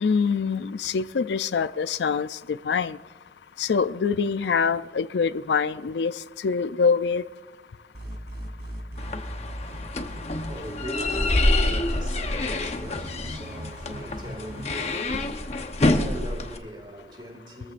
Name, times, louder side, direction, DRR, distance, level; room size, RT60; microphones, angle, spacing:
voice 1, 0.0-2.3 2.7-3.0 3.6-6.1 6.4-7.2, left 5 dB, 70° left, 0.4 m, -24 dB
sound 1, 7.9-14.8, equal, 65° right, 2.6 m, -39 dB
sound 2, 9.0-16.6, left 2 dB, 35° left, 0.9 m, -27 dB
voice 2, 10.3-17.7, right 1 dB, 25° right, 2.2 m, -41 dB
23.5 x 14.5 x 2.5 m
head